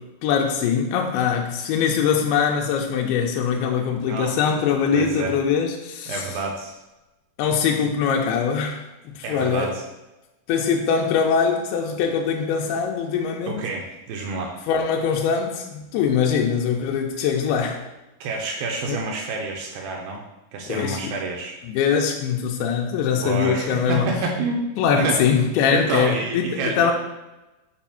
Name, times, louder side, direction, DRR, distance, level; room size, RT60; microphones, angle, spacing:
voice 1, 0.0-6.2 7.4-9.7 10.5-13.6 14.7-17.8 18.9-19.0 20.7-21.1 21.7-24.1 24.8-26.9, left 7 dB, 85° left, 1 dB, 2.6 m, -22 dB
voice 2, 4.9-5.4 6.1-6.7 9.2-9.8 13.5-14.5 18.2-20.2 20.5-21.6 23.2-25.2 25.7-26.9, right 3 dB, 80° right, 0 dB, 2.3 m, -28 dB
7.0 x 2.4 x 5.6 m, 1.0 s
omnidirectional pair, 4.6 m